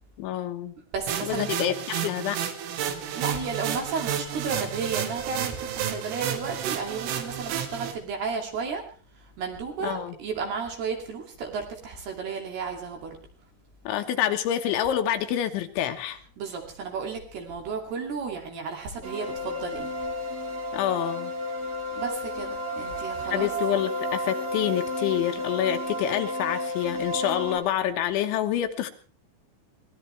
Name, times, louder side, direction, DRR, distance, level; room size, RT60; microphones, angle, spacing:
voice 1, 0.2-0.7 1.2-2.4 9.8-10.1 13.8-16.2 20.7-21.3 23.3-28.9, left 11 dB, 75° left, 7 dB, 3.5 m, -27 dB
voice 2, 0.9-1.6 3.1-8.8 9.4-13.2 16.4-20.0 22.0-23.5, right 5 dB, 60° right, 2 dB, 4.4 m, -33 dB
sound 1, 1.1-7.9, right 9 dB, 90° right, 4.3 m, -31 dB
sound 2, 19.0-27.6, left 1 dB, 45° right, 2.1 m, -32 dB
23.0 x 18.0 x 3.4 m, 0.37 s
omnidirectional pair, 5.5 m